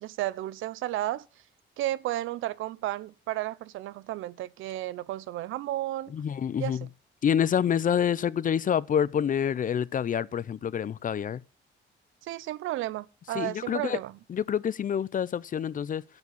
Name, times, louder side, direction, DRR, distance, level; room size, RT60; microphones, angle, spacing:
voice 1, 0.0-1.3 1.8-6.1 6.6-6.8 12.2-14.1, right 14 dB, 85° right, 0.6 m, -33 dB
voice 2, 6.1-6.9 7.2-11.4 13.3-14.0 14.3-16.0, left 8 dB, 40° left, 0.5 m, -27 dB
10.5 x 7.3 x 6.9 m
cardioid pair, 90°, 20 cm